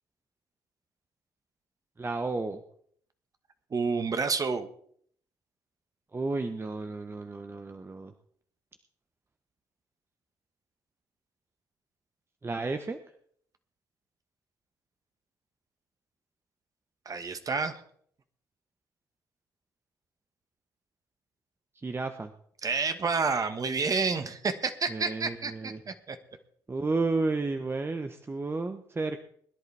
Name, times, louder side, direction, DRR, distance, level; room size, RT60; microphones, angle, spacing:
voice 1, 2.0-2.6 6.1-8.1 12.4-13.0 21.7-22.3 24.9-25.8 26.7-29.2, right 3 dB, 25° right, 7 dB, 1.0 m, -32 dB
voice 2, 3.7-4.7 17.0-17.8 22.6-26.2, right 4 dB, 45° right, 9 dB, 1.5 m, -29 dB
21.0 x 11.0 x 3.5 m, 0.62 s
hypercardioid pair, 50°, 9 cm